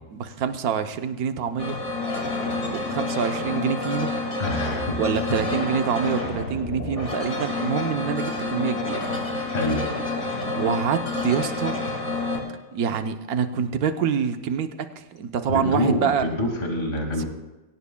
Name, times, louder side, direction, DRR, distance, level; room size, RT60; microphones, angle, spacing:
voice 1, 0.1-1.8 2.7-4.1 5.0-9.1 10.5-11.8 12.7-16.3 17.2-17.3, right 7 dB, 75° right, 8 dB, 1.3 m, -26 dB
sound 1, 1.6-12.4, left 2 dB, 60° left, 2.8 m, -28 dB
voice 2, 4.4-5.0 5.3-5.4 9.5-9.9 15.5-17.3, left 1 dB, 35° left, 1 dB, 2.4 m, -26 dB
21.5 x 17.5 x 2.3 m, 1.1 s
omnidirectional pair, 1.6 m